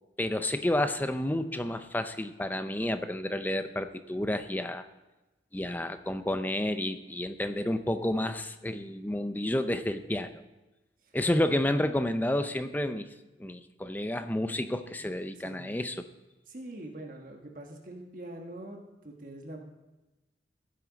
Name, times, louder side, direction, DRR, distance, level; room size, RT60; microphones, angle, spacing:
voice 1, 0.2-4.8 5.5-10.3 11.1-13.1 13.4-16.1, left 1 dB, 10° left, 9 dB, 0.5 m, -30 dB
voice 2, 15.4-15.9 16.5-19.6, right 1 dB, 45° right, 2 dB, 1.4 m, -44 dB
15.5 x 9.1 x 4.0 m, 1.1 s
head